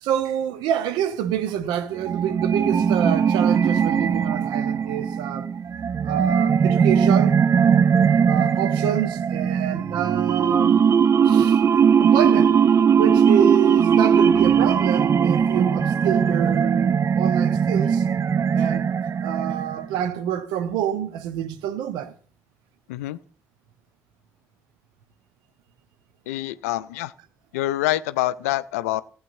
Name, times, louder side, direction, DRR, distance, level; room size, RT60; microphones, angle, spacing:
voice 1, 0.0-5.5 6.0-7.5 8.3-10.9 11.2-11.6 12.0-12.6 12.9-18.1 18.5-18.9 19.2-22.1, right 9 dB, 65° right, 0.9 m, -27 dB
sound 1, 2.0-20.0, right 7 dB, 35° right, 0.4 m, -19 dB
voice 2, 26.3-27.1 27.5-29.0, left 15 dB, 70° left, 0.4 m, -26 dB
18.0 x 8.7 x 2.6 m
figure-of-eight pair, 45°, 8 cm